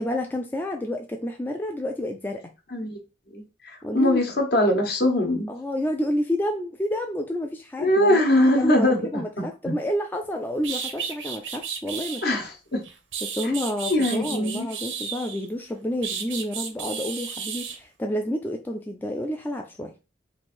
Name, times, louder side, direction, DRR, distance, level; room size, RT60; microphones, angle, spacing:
voice 1, 0.0-2.5 3.8-4.2 5.5-12.2 13.2-19.9, left 1 dB, 10° left, 0.3 m, -29 dB
voice 2, 3.3-5.5 7.8-9.7 12.2-12.8 13.9-14.7, left 1 dB, 55° left, 1.0 m, -22 dB
sound 1, 10.2-10.3 10.6-12.2 12.8-15.5 16.0-17.8, right 6 dB, 85° right, 0.8 m, -33 dB
3.2 x 2.6 x 4.3 m
head